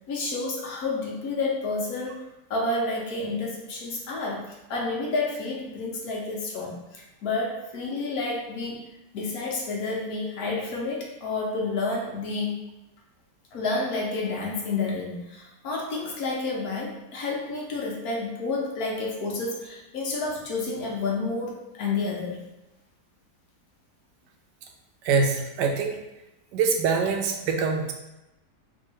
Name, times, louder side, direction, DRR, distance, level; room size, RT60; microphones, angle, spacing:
voice 1, 0.1-2.2 2.5-8.8 9.1-12.6 13.5-22.4, left 3 dB, 65° left, -2 dB, 1.3 m, -30 dB
voice 2, 25.0-26.0 26.5-27.9, right 5 dB, 90° right, 3 dB, 1.2 m, -24 dB
3.7 x 2.7 x 4.4 m, 0.94 s
omnidirectional pair, 1.8 m